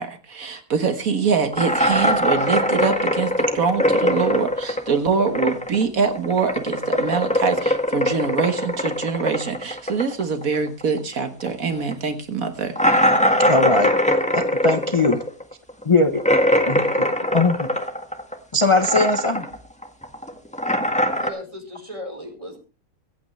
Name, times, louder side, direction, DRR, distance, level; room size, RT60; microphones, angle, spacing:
voice 1, 0.0-12.8, right 5 dB, 75° right, 7 dB, 1.8 m, -24 dB
sound 1, 1.5-5.8 6.1-11.1 11.4-11.5 11.9-12.0 12.8-18.3 18.6-19.5 19.8-21.3, equal, 5° left, 1.7 m, -21 dB
voice 2, 13.4-13.9 14.3-15.2 15.9-16.2 16.7-16.8 17.3-17.7 18.5-19.5, left 3 dB, 25° left, 7 dB, 0.9 m, -19 dB
voice 3, 21.2-22.6, left 1 dB, 25° right, 2 dB, 4.7 m, -36 dB
24.5 x 8.8 x 3.3 m, 0.32 s
omnidirectional pair, 1.5 m